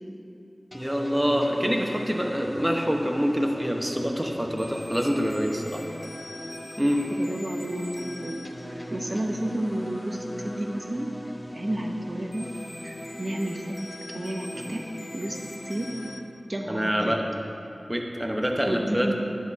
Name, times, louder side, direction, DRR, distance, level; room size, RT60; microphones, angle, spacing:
sound 1, 0.7-16.2, left 1 dB, 35° left, 0.7 m, -39 dB
voice 1, 0.7-5.8 6.8-7.0 14.5-14.7 16.7-17.2 17.9-19.1, equal, 10° right, 1 dB, 0.9 m, -26 dB
voice 2, 7.1-7.8 8.2-8.4 8.9-11.1 11.5-12.5 12.8-13.6 14.1-14.8 15.1-15.4 15.6-15.9 16.5-17.1 18.7-19.1, right 1 dB, 35° right, 2 dB, 0.9 m, -31 dB
10.5 x 4.1 x 6.1 m, 2.7 s
wide cardioid pair, 50°, 0 cm